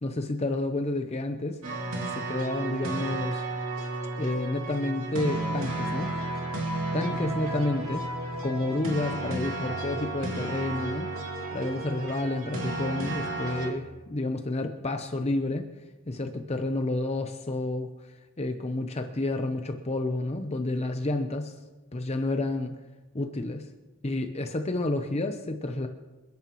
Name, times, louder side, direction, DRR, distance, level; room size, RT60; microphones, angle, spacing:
voice 1, 0.0-1.6 2.1-3.4 4.2-6.2 6.9-8.1 8.4-11.1 11.5-15.7 16.1-21.5 21.9-22.8 23.1-23.7 24.0-25.9, left 2 dB, 30° left, 5 dB, 0.7 m, -30 dB
sound 1, 1.6-13.7, right 2 dB, 75° right, 2.6 m, -32 dB
27.5 x 10.5 x 3.1 m, 1.2 s
head